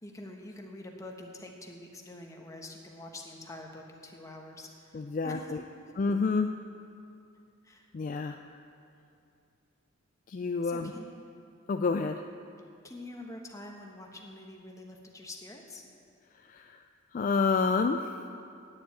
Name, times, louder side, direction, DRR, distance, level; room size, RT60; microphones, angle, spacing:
voice 1, 0.0-5.6 7.6-7.9 10.6-11.2 12.8-15.8, left 1 dB, 15° left, 1 dB, 1.1 m, -46 dB
voice 2, 4.9-5.6 6.0-6.5 7.9-8.4 10.3-10.9 11.7-12.2 16.3-16.8 17.1-18.2, left 4 dB, 40° left, 6 dB, 0.3 m, -29 dB
9.7 x 7.4 x 8.7 m, 2.5 s
head